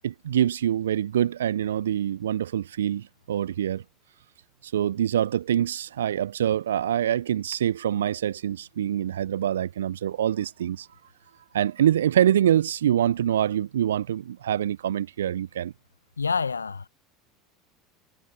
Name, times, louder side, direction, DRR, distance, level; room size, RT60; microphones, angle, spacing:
voice 1, 0.0-3.8 4.6-10.9 11.5-15.7, right 10 dB, 75° right, 0.5 m, -25 dB
voice 2, 16.2-16.9, left 5 dB, 85° left, 1.2 m, -27 dB
figure-of-eight pair, 75°, 0 cm